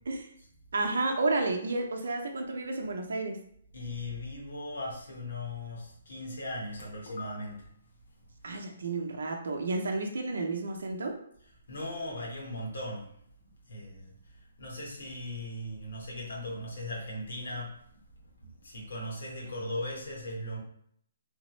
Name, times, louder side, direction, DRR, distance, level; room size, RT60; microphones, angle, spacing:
voice 1, 0.7-3.4 8.4-11.1, right 3 dB, 75° right, 3 dB, 0.6 m, -31 dB
voice 2, 3.7-7.7 11.4-13.1 13.4-17.8 18.4-20.6, left 1 dB, 70° left, -2 dB, 1.2 m, -38 dB
3.4 x 2.0 x 3.1 m, 0.67 s
hypercardioid pair, 175°, 0 cm